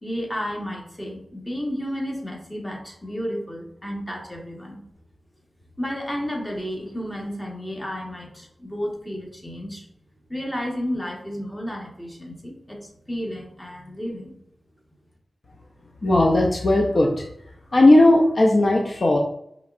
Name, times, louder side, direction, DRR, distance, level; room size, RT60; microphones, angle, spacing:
voice 1, 0.0-4.8 5.8-9.9 10.3-14.4, equal, 15° left, 0 dB, 1.2 m, -32 dB
voice 2, 16.0-17.1 17.7-19.2, left 1 dB, 55° left, -1 dB, 0.6 m, -16 dB
5.3 x 3.1 x 2.5 m, 0.74 s
cardioid pair, 60°, 0 cm